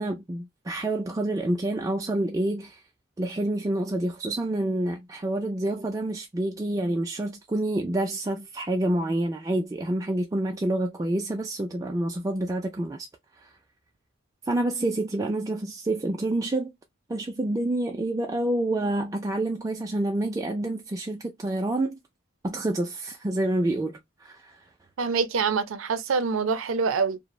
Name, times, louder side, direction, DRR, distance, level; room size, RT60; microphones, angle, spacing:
voice 1, 0.0-2.8 3.2-13.1 13.4-13.5 14.5-16.7 17.1-22.0 22.4-24.6, right 1 dB, 15° right, 0.3 m, -28 dB
voice 2, 25.0-27.2, right 5 dB, 75° right, 0.5 m, -25 dB
3.0 x 2.0 x 2.2 m
head